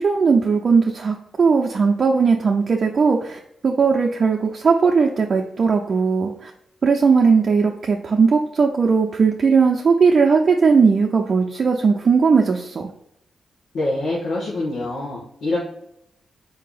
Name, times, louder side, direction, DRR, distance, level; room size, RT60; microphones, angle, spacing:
voice 1, 0.0-3.4 3.6-6.3 6.8-12.9, right 5 dB, 50° right, 0 dB, 0.5 m, -18 dB
voice 2, 13.7-15.6, left 2 dB, 85° left, -7 dB, 1.5 m, -25 dB
4.5 x 2.8 x 3.9 m, 0.73 s
cardioid pair, 85°, 0 cm